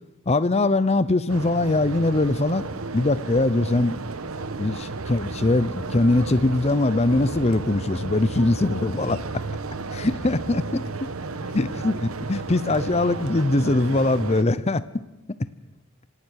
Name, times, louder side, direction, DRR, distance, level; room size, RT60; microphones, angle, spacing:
voice 1, 0.3-2.7 2.9-4.0 4.6-9.2 9.9-10.9 11.5-14.8, left 2 dB, 30° left, 15 dB, 0.7 m, -22 dB
sound 1, 1.3-14.4, right 3 dB, 85° right, 1.2 m, -33 dB
sound 2, 8.8-11.0, right 1 dB, 45° right, 6.9 m, -44 dB
27.0 x 18.5 x 6.5 m, 1.0 s
head